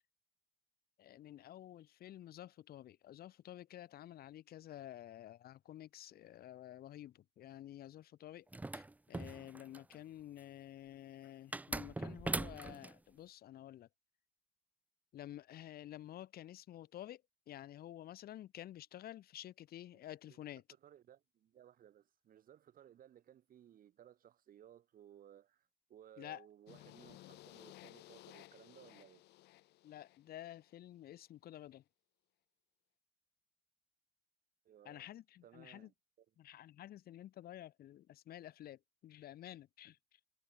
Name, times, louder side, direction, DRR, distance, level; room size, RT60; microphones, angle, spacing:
voice 1, 1.0-8.5 8.7-13.9 15.1-20.6 26.2-26.5 29.8-31.8 34.8-35.9 36.4-40.0, left 12 dB, 65° left, 3.0 m, -51 dB
sound 1, 8.5-9.9 11.5-12.9, right 2 dB, 10° right, 0.6 m, -41 dB
voice 2, 20.8-29.3 34.6-35.1 35.4-36.3, right 10 dB, 55° right, 5.6 m, -61 dB
sound 2, 26.7-30.7, left 17 dB, 80° left, 2.0 m, -58 dB
cardioid pair, 110°, 17 cm